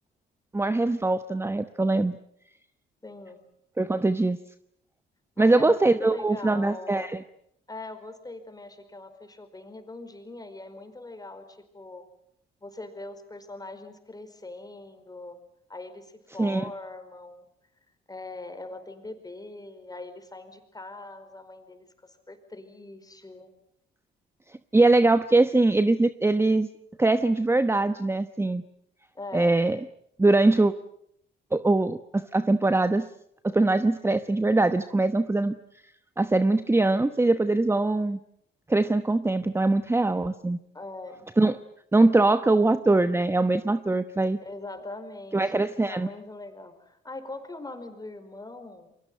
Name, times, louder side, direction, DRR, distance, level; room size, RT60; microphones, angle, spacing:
voice 1, 0.5-2.2 3.8-4.4 5.4-7.2 16.4-16.6 24.7-26.7 27.0-28.6 29.3-29.8 30.2-30.7 31.5-33.0 33.4-35.5 36.2-38.2 38.7-40.6 41.4-41.6 41.9-44.4 45.3-46.1, right 2 dB, 10° right, 11 dB, 1.0 m, -22 dB
voice 2, 3.0-3.4 5.3-7.2 7.7-12.1 12.6-15.4 15.7-17.5 18.1-23.5 29.1-29.5 40.7-41.2 44.4-45.4 45.9-48.9, left 2 dB, 20° left, 8 dB, 5.0 m, -41 dB
28.5 x 23.0 x 7.8 m, 0.72 s
cardioid pair, 90°, 20 cm